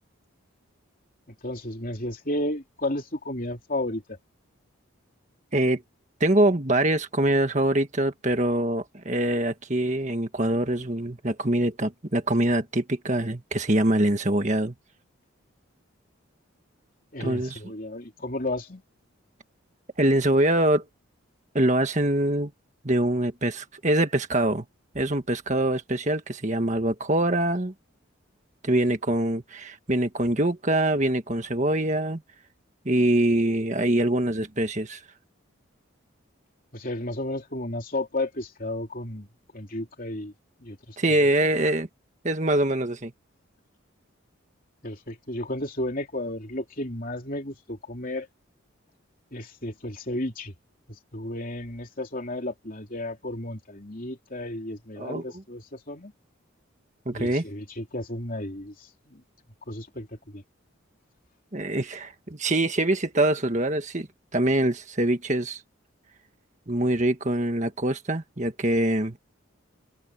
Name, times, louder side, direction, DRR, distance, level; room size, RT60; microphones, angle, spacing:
voice 1, 1.3-4.2 17.1-18.8 36.7-39.3 39.5-40.3 40.6-41.0 44.8-48.3 49.3-50.5 50.9-56.1 57.1-59.2 59.7-60.4, left 1 dB, 40° left, 3.3 m, -33 dB
voice 2, 6.2-14.7 17.2-17.7 20.0-20.8 21.5-22.5 22.8-24.6 24.9-27.7 28.6-32.2 32.8-35.0 41.0-41.9 42.2-43.1 55.0-55.2 57.0-57.4 61.5-64.1 64.3-65.6 66.7-69.2, right 1 dB, 35° right, 1.6 m, -24 dB
head